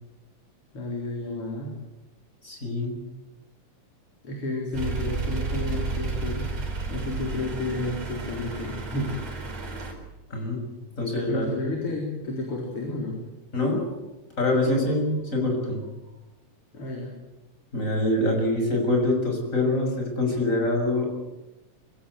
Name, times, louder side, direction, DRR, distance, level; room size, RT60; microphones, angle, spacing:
voice 1, 0.7-1.8 4.2-6.5 6.9-9.1 11.3-13.2 16.7-17.1, left 2 dB, 45° left, -1 dB, 4.9 m, -31 dB
voice 2, 2.4-3.0 10.3-10.6 11.0-11.5 13.5-13.8 14.4-15.8 17.7-21.1, left 1 dB, 25° left, 2 dB, 7.1 m, -25 dB
sound 1, 4.7-9.9, right 3 dB, 60° right, 5.4 m, -31 dB
26.0 x 16.0 x 9.4 m, 1.0 s
omnidirectional pair, 3.4 m